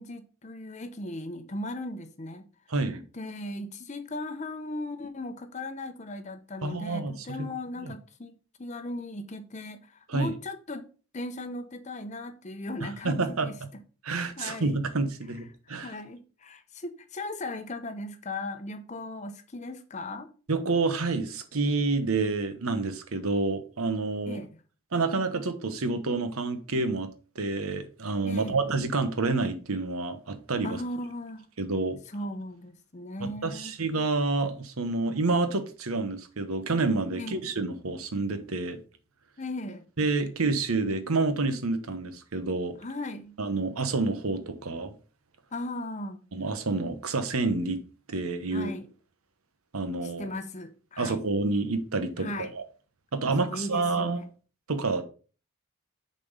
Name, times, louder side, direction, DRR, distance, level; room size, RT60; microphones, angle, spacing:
voice 1, 0.0-2.5 3.1-8.3 8.6-10.9 11.1-13.6 14.4-14.8 15.7-20.3 24.3-24.6 28.2-28.6 30.6-31.5 32.1-33.7 37.1-37.3 39.4-39.8 42.8-43.3 45.5-46.2 48.5-48.9 50.0-51.2 52.2-52.5 53.5-54.2, left 2 dB, 35° left, 0.7 m, -37 dB
voice 2, 2.7-3.0 6.6-7.5 7.8-7.9 10.1-10.3 13.0-13.5 14.0-15.9 20.5-24.4 24.9-27.1 27.3-30.8 31.6-32.0 33.2-38.8 40.0-42.8 43.4-44.9 46.3-47.8 48.1-48.7 49.7-50.3 51.0-52.6 53.1-54.2 54.7-55.0, right 3 dB, 85° right, 1.1 m, -28 dB
6.7 x 4.3 x 5.4 m
head